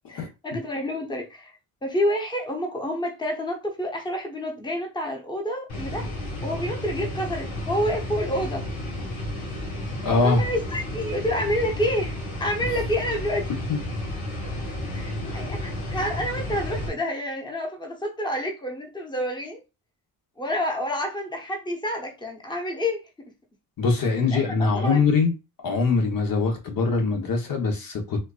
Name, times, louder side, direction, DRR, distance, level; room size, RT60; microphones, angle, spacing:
voice 1, 0.1-1.6 1.8-6.1 6.4-8.7 10.2-13.5 14.9-19.6 20.4-23.3 24.3-25.0, equal, 10° left, 0.9 m, -28 dB
sound 1, 5.7-16.9, left 1 dB, 80° left, 1.7 m, -32 dB
voice 2, 10.0-10.4 13.7-13.8 15.2-15.5 23.8-25.3 25.6-28.2, left 4 dB, 60° left, 1.1 m, -23 dB
4.3 x 2.5 x 2.4 m
cardioid pair, 120°, 39 cm